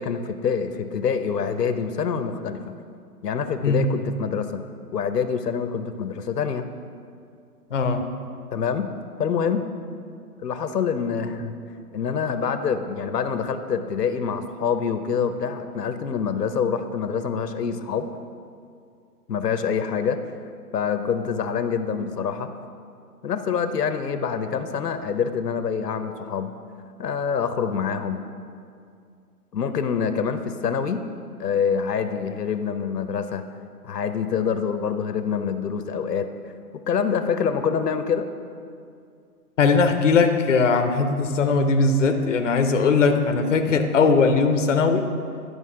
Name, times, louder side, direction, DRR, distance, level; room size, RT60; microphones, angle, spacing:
voice 1, 0.0-2.6 3.2-4.6 4.9-6.6 8.5-8.9 9.2-9.7 10.4-11.5 11.9-18.1 19.3-20.2 20.7-22.5 23.2-26.5 27.0-28.2 29.5-31.0 31.4-33.4 33.8-36.3 36.9-38.3, left 6 dB, 90° left, 9 dB, 0.8 m, -26 dB
voice 2, 7.7-8.0 39.6-45.0, left 4 dB, 50° left, 6 dB, 0.6 m, -19 dB
11.0 x 5.2 x 3.7 m, 2.4 s
hypercardioid pair, 170°, 47 cm